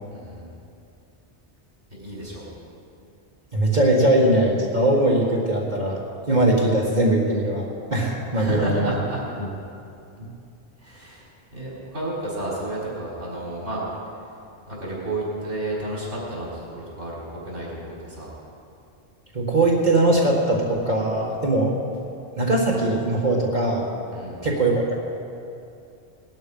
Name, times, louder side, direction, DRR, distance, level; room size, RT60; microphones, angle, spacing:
voice 1, 0.1-0.5 1.9-2.5 8.3-9.2 10.8-13.8 14.7-18.3 24.1-24.4, right 1 dB, 80° right, -6 dB, 4.5 m, -31 dB
voice 2, 3.5-6.0 6.3-8.9 19.3-21.7 22.4-23.8 24.4-25.0, right 1 dB, 40° right, -4 dB, 1.9 m, -20 dB
19.0 x 12.0 x 5.5 m, 2.6 s
omnidirectional pair, 1.1 m